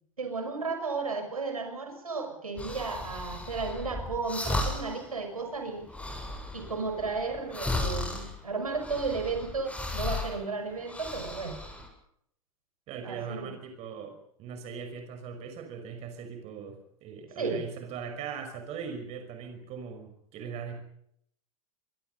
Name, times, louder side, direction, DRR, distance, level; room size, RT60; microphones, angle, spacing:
voice 1, 0.2-5.9 6.5-11.6 13.0-13.5 17.4-17.6, right 4 dB, 85° right, 5 dB, 6.4 m, -34 dB
sound 1, 2.6-5.1 5.4-5.5 5.8-10.4 10.7-11.9, left 2 dB, 5° left, 7.8 m, -35 dB
voice 2, 12.9-20.8, right 6 dB, 35° right, 7 dB, 5.5 m, -40 dB
25.5 x 24.0 x 5.5 m, 0.71 s
figure-of-eight pair, 100°, 18 cm